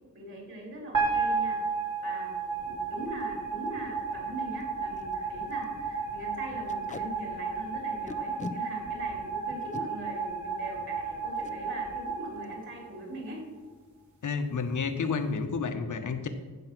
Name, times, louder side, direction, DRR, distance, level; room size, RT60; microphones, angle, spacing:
voice 1, 0.1-1.6 2.0-2.3 2.7-13.5, right 1 dB, 40° right, 0 dB, 3.8 m, -41 dB
sound 1, 0.9-13.2, right 4 dB, 70° right, 3.3 m, -33 dB
Packing tape duct tape, 3.0-3.2 3.7-3.8 4.0-4.1 4.6-4.7 5.0-5.1 5.5-5.7 6.7-7.0 8.1-8.6 9.5-9.8 11.4-11.6 11.9-12.1 12.4-12.8, left 3 dB, 25° left, 0.7 m, -40 dB
voice 2, 14.2-16.3, left 5 dB, 70° left, 7 dB, 1.3 m, -30 dB
15.0 x 6.3 x 6.2 m, 1.3 s
wide cardioid pair, 145°, 31 cm